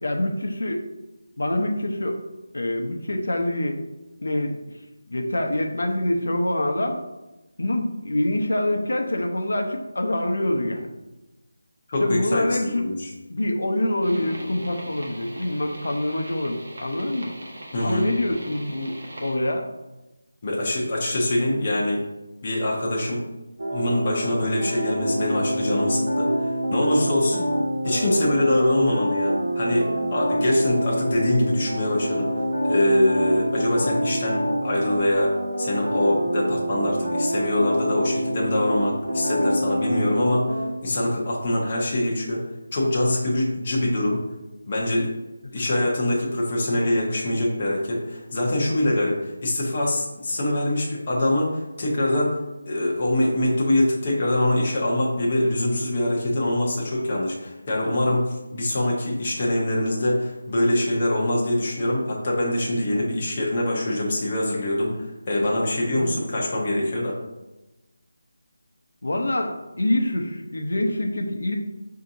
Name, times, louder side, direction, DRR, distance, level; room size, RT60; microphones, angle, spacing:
voice 1, 0.0-0.8 1.4-2.2 2.5-3.8 4.2-4.8 5.1-7.0 7.6-10.9 12.0-12.9 13.3-17.3 17.8-19.7 45.4-45.5 65.9-66.2 69.0-71.6, left 1 dB, 80° left, 3 dB, 0.6 m, -25 dB
voice 2, 11.9-13.1 17.7-18.0 20.4-22.0 22.4-23.2 23.7-27.5 27.8-32.3 32.6-40.5 40.8-42.4 42.7-44.2 44.7-45.1 45.5-52.4 52.7-67.1, left 1 dB, 25° left, -4 dB, 0.6 m, -24 dB
sound 1, 14.0-19.3, right 1 dB, 45° right, 0.7 m, -41 dB
sound 2, 23.6-40.7, equal, 75° right, 1.1 m, -26 dB
5.6 x 2.7 x 2.6 m, 1.0 s
figure-of-eight pair, 180°, 0 cm